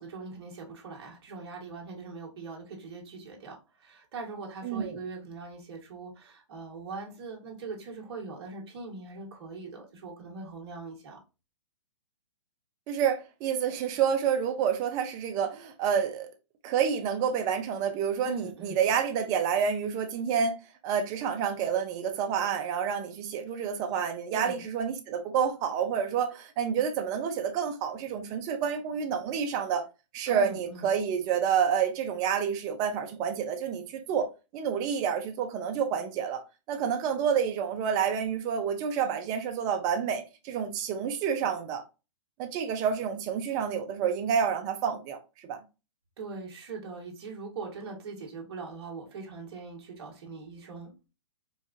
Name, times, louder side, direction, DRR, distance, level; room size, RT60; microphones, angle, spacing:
voice 1, 0.0-11.2 18.2-18.8 24.3-24.6 30.3-30.9 46.2-50.9, right 3 dB, 50° right, 1.6 m, -41 dB
voice 2, 4.6-5.0 12.9-16.3 16.6-20.6 20.8-29.8 30.1-34.3 34.5-41.8 42.4-45.2 45.5-45.6, right 7 dB, 20° right, 0.6 m, -29 dB
4.6 x 2.4 x 2.6 m
hypercardioid pair, 155°, 16 cm